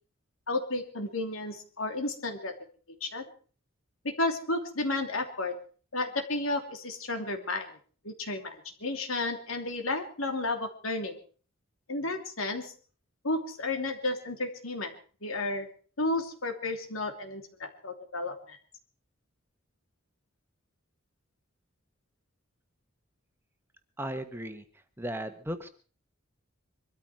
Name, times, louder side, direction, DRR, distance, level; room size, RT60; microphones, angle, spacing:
voice 1, 0.5-2.5 3.0-3.2 4.0-5.5 5.9-7.7 8.0-11.2 11.9-12.7 13.2-14.9 15.2-15.7 16.0-18.6, left 2 dB, 90° left, 5 dB, 2.9 m, -32 dB
voice 2, 24.0-24.6 25.0-25.7, equal, 10° right, 8 dB, 1.3 m, -36 dB
23.0 x 13.0 x 4.7 m, 0.41 s
head